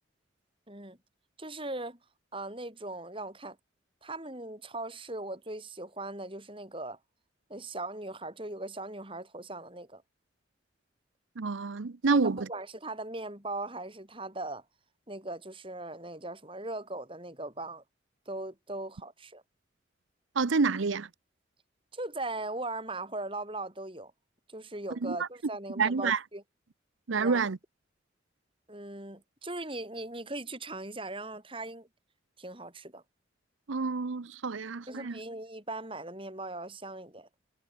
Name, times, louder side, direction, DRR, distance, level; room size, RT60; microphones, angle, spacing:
voice 1, 0.7-1.0 1.4-2.0 2.3-3.6 4.0-7.0 7.5-10.0 12.1-14.6 15.1-17.8 18.3-19.4 21.9-24.1 24.5-26.4 27.1-27.5 28.7-31.9 32.4-33.0 34.9-37.3, right 2 dB, 25° right, 7.2 m, -39 dB
voice 2, 11.4-12.5 20.4-21.1 25.0-25.2 25.8-26.2 27.1-27.6 33.7-35.1, right 4 dB, 85° right, 0.7 m, -28 dB
head